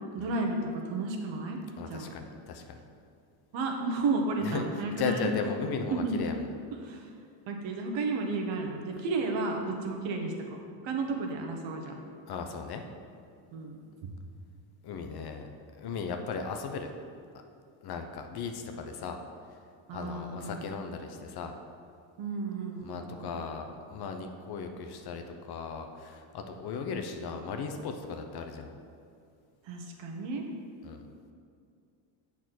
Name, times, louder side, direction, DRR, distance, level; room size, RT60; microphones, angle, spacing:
voice 1, 0.1-1.6 1.8-2.1 3.5-5.3 5.9-6.2 6.8-7.1 7.5-11.9 13.5-14.1 19.9-20.6 22.2-23.4 29.6-30.5, right 3 dB, 65° right, 2 dB, 1.3 m, -33 dB
voice 2, 1.8-2.8 4.4-4.7 5.0-6.5 12.3-12.9 14.8-15.5 15.8-16.9 17.8-19.2 19.5-19.6 19.9-21.6 22.8-28.7 30.8-31.0, left 5 dB, 50° left, 5 dB, 0.8 m, -36 dB
7.2 x 4.2 x 6.1 m, 2.3 s
cardioid pair, 110°, 49 cm